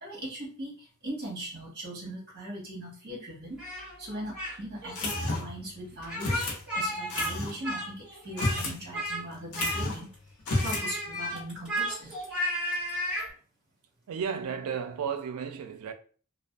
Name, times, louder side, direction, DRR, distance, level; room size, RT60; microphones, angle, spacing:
voice 1, 0.0-3.6 4.0-10.1 10.6-12.2, right 1 dB, 50° right, 1.2 m, -39 dB
Speech, 3.6-4.6 4.8-5.2 6.0-7.3 7.6-8.6 8.9-9.2 9.5-10.1 10.5-13.3, equal, 5° right, 1.4 m, -33 dB
sound 1, 5.0-5.6 6.2-6.6 7.1-7.6 8.3-8.8 9.1-9.2 9.5-10.0 10.4-10.9, left 2 dB, 80° left, 0.8 m, -31 dB
voice 2, 14.1-15.9, right 7 dB, 85° right, 0.4 m, -33 dB
2.5 x 2.2 x 2.3 m
head